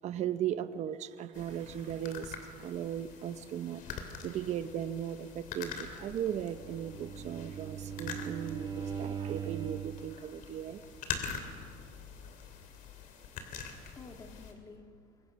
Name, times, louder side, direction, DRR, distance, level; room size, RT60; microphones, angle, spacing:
voice 1, 0.0-10.8, right 10 dB, 50° right, 11 dB, 0.9 m, -37 dB
sound 1, 1.3-14.5, left 6 dB, 60° left, 3.1 m, -45 dB
Bowed string instrument, 6.4-10.1, right 8 dB, 30° right, 1.3 m, -40 dB
voice 2, 12.7-15.3, left 3 dB, 20° left, 4 dB, 2.2 m, -54 dB
25.5 x 23.5 x 6.4 m, 2.2 s
cardioid pair, 140°, 15 cm